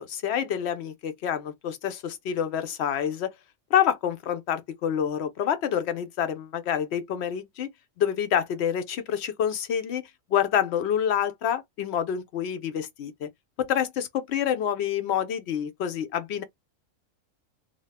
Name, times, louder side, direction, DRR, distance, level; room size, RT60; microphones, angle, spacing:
voice 1, 0.0-3.3 3.7-7.7 8.0-13.3 13.6-16.4, left 9 dB, 60° left, 0.8 m, -27 dB
2.7 x 2.4 x 3.2 m
omnidirectional pair, 1.4 m